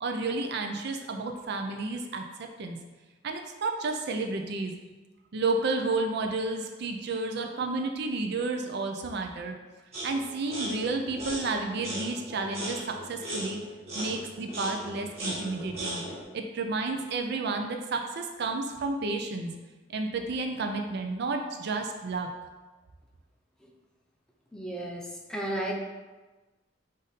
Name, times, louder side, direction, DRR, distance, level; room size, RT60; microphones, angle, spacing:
voice 1, 0.0-2.8 3.2-4.7 5.3-9.6 10.0-13.6 13.9-16.0 16.3-19.5 19.9-22.3, right 3 dB, 60° right, 4 dB, 0.5 m, -31 dB
sound 1, 9.9-10.2 10.5-16.2, right 1 dB, 35° right, 1.4 m, -37 dB
voice 2, 24.5-25.0 25.3-25.8, right 1 dB, 5° left, -1 dB, 0.5 m, -32 dB
5.1 x 2.6 x 4.0 m, 1.2 s
head